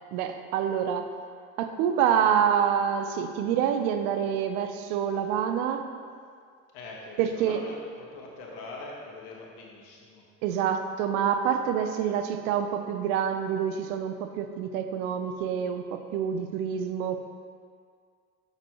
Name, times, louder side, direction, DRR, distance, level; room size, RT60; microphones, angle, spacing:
voice 1, 0.1-1.1 1.6-5.9 7.2-7.6 10.4-17.2, right 8 dB, 75° right, 7 dB, 0.7 m, -27 dB
voice 2, 6.7-10.2, left 2 dB, 75° left, -2 dB, 1.5 m, -43 dB
6.6 x 6.2 x 3.0 m, 2.1 s
hypercardioid pair, 80°, 44 cm